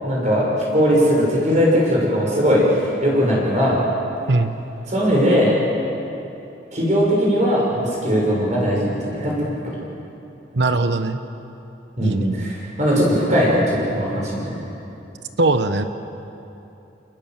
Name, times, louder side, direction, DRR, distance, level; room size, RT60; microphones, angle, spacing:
voice 1, 0.0-3.8 4.9-5.6 6.7-9.5 12.0-14.4, equal, 40° right, -4 dB, 6.5 m, -19 dB
voice 2, 10.5-11.2 12.0-12.5 15.4-15.8, right 2 dB, 75° right, 9 dB, 1.1 m, -20 dB
28.5 x 20.0 x 7.6 m, 2.8 s
head